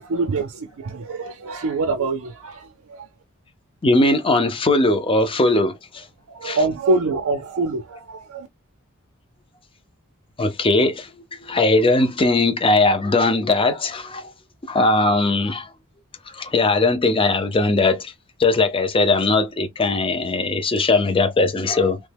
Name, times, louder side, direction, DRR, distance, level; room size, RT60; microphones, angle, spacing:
voice 1, 0.0-3.1 6.3-8.5, right 3 dB, 75° right, 0.5 m, -25 dB
voice 2, 3.8-6.0 6.4-6.6 10.4-11.1 11.4-14.3 14.7-15.7 16.3-18.1 18.4-22.0, left 2 dB, 25° left, 0.5 m, -19 dB
3.1 x 2.1 x 3.3 m
head